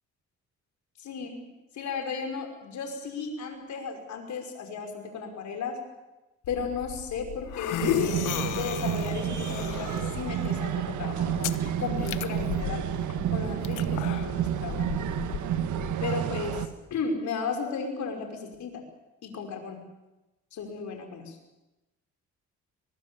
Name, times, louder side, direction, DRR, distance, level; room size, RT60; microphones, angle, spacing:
voice 1, 1.0-1.5 1.7-5.8 6.5-12.9 13.3-15.1 16.0-16.6 16.9-18.8 19.2-19.8 20.5-21.4, left 5 dB, 70° left, 4 dB, 5.6 m, -35 dB
sound 1, 6.4-15.9, left 12 dB, 85° left, 1.1 m, -35 dB
sound 2, 7.8-16.7, right 10 dB, 75° right, 1.6 m, -30 dB
22.5 x 22.5 x 7.1 m, 1.0 s
cardioid pair, 90°, 30 cm